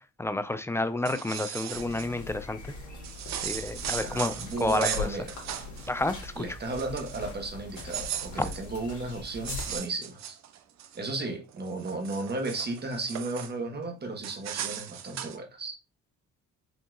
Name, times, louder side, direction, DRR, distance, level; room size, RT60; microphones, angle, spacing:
voice 1, 0.2-2.6 3.4-4.3 4.6-5.1 5.9-6.4, left 2 dB, 10° left, 0.4 m, -29 dB
sound 1, 0.9-2.1 3.0-5.9 6.2-6.4 6.7-7.3 7.7-11.0 11.5-13.5 14.2-15.4, right 10 dB, 65° right, 0.6 m, -37 dB
sound 2, 1.7-9.8, left 4 dB, 70° left, 2.0 m, -41 dB
voice 2, 4.0-5.3 6.4-10.4 10.9-15.8, right 2 dB, 35° right, 1.2 m, -34 dB
5.3 x 2.8 x 2.4 m
cardioid pair, 90°, 30 cm